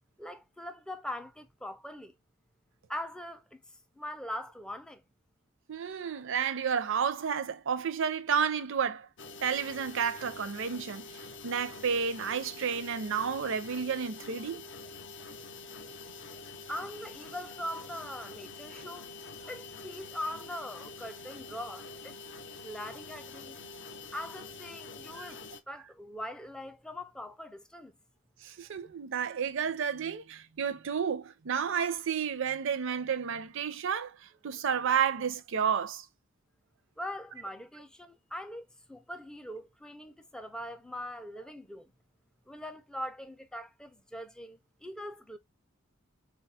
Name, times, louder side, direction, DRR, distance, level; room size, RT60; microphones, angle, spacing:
voice 1, 0.2-2.1 2.9-3.6 4.0-5.0 15.9-16.0 16.7-19.1 19.5-22.2 22.6-23.6 24.1-27.9 37.0-41.9 42.5-45.4, left 1 dB, 5° left, 0.4 m, -41 dB
voice 2, 5.7-9.1 9.4-14.6 25.2-25.3 28.4-34.1 34.4-36.1, right 7 dB, 60° right, 0.5 m, -31 dB
sound 1, 9.2-25.6, left 4 dB, 60° left, 0.5 m, -46 dB
3.9 x 2.3 x 2.7 m
head